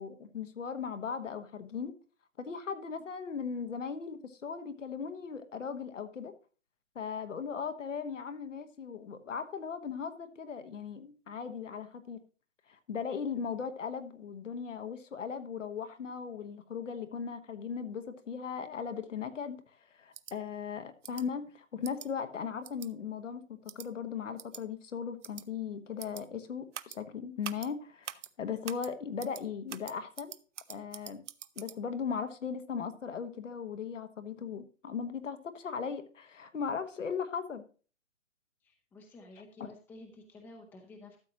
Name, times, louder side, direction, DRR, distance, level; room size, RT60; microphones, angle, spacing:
voice 1, 0.0-1.9 2.4-6.3 6.9-12.2 12.7-19.6 19.9-30.3 30.7-31.2 31.6-37.6, left 6 dB, 70° left, 1.4 m, -38 dB
sound 1, 20.1-20.3 21.0-21.2 21.8-22.1 22.6-22.9 23.7-23.9 24.4-24.6 25.2-25.4 26.0-26.2 26.7-27.0 27.4-27.7 28.0-28.3 28.6-28.9 29.2-29.4 29.7-31.8, right 9 dB, 70° right, 0.7 m, -44 dB
voice 2, 38.6-41.2, left 2 dB, 5° left, 0.7 m, -52 dB
13.0 x 7.3 x 2.9 m
hypercardioid pair, 140°, 38 cm